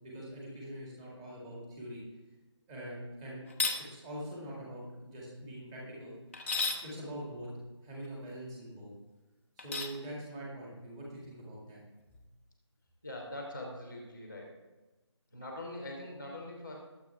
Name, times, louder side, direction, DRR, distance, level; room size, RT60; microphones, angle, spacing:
voice 1, 0.0-2.0 2.7-3.4 3.9-6.1 6.8-7.5 7.8-8.9 9.6-11.8 12.1-12.2, right 1 dB, 10° right, -4 dB, 2.1 m, -43 dB
sound 1, 3.5-3.8 6.3-6.8 9.6-10.0, left 4 dB, 25° left, 0.9 m, -32 dB
voice 2, 13.0-14.6 15.3-16.8, left 1 dB, 5° left, -12 dB, 0.4 m, -43 dB
21.5 x 8.2 x 3.5 m, 1.2 s
figure-of-eight pair, 175°, 15 cm